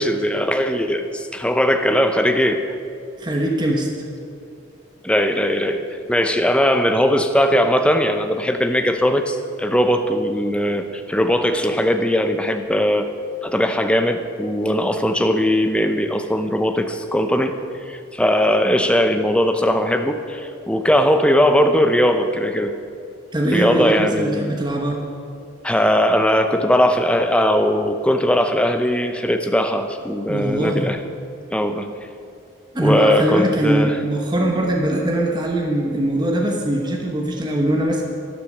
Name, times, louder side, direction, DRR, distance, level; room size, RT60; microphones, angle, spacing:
voice 1, 0.0-2.8 5.0-5.8 6.1-13.1 13.4-17.6 17.9-22.7 23.5-24.5 25.6-31.0 31.5-31.9 32.7-34.0, equal, 5° left, 7 dB, 0.6 m, -19 dB
voice 2, 3.2-3.9 23.3-25.0 30.3-30.9 32.7-38.0, right 1 dB, 20° right, 1 dB, 1.1 m, -21 dB
12.0 x 12.0 x 6.5 m, 2.5 s
head